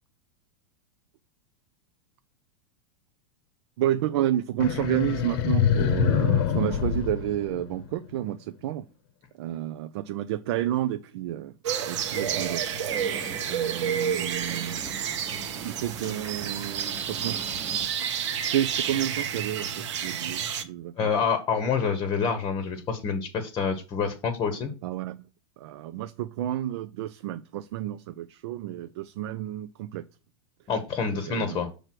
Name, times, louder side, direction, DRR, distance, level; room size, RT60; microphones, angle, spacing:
voice 1, 3.8-8.8 9.4-11.5 11.9-12.7 13.5-14.8 15.6-17.8 18.4-21.1 24.8-25.3 25.6-30.0 31.1-31.7, right 12 dB, 60° right, 11 dB, 0.5 m, -30 dB
sound 1, 4.6-8.1, left 8 dB, 55° left, 0.8 m, -25 dB
sound 2, 11.6-20.6, right 8 dB, 80° right, 1.0 m, -30 dB
sound 3, 11.9-17.9, right 5 dB, 20° right, 0.8 m, -43 dB
voice 2, 13.1-13.4 21.0-24.7 30.7-31.7, left 5 dB, 25° left, 8 dB, 0.9 m, -27 dB
6.1 x 3.4 x 5.9 m, 0.33 s
supercardioid pair, 145°, 15 cm